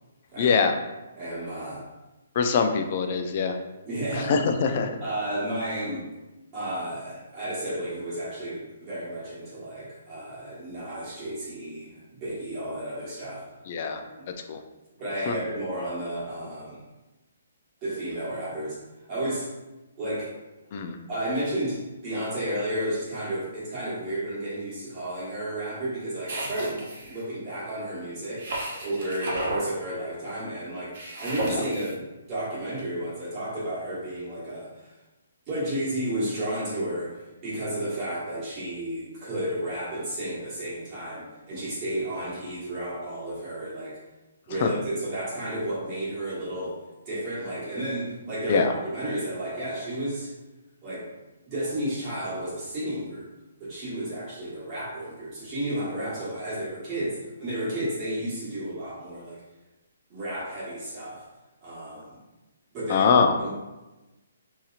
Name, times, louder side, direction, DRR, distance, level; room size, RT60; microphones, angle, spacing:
voice 1, 0.4-0.7 2.4-3.6 4.1-4.9 13.7-14.0 14.5-14.6 15.3-15.4 20.7-21.0 31.5-31.6 44.6-44.7 48.5-48.7 62.9-63.3, left 5 dB, 40° left, 5 dB, 0.3 m, -23 dB
voice 2, 1.2-1.9 3.8-4.4 5.0-6.1 6.5-13.5 13.8-14.3 15.0-16.8 17.8-18.8 19.1-19.5 20.0-20.3 21.1-28.5 28.8-35.0 35.5-44.0 44.5-50.3 50.8-51.2 51.5-53.3 53.6-59.4 60.1-61.2 61.6-62.2 62.7-63.1 63.4-63.5, right 1 dB, 25° right, -9 dB, 1.3 m, -32 dB
sound 1, 26.2-27.2 28.4-29.7 30.9-31.9, right 2 dB, 50° right, 0.8 m, -33 dB
2.8 x 2.8 x 2.4 m, 1.1 s
hypercardioid pair, 160°, 0 cm